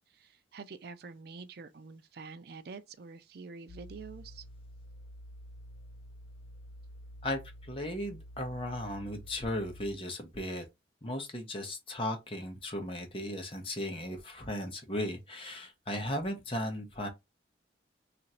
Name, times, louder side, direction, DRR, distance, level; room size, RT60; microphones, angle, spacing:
voice 1, 0.0-4.4, right 4 dB, 55° right, 0.4 m, -47 dB
sound 1, 3.7-9.9, equal, 70° left, 0.4 m, -49 dB
voice 2, 7.2-10.6 11.0-17.1, left 1 dB, 30° left, 0.9 m, -36 dB
3.0 x 2.5 x 4.2 m
head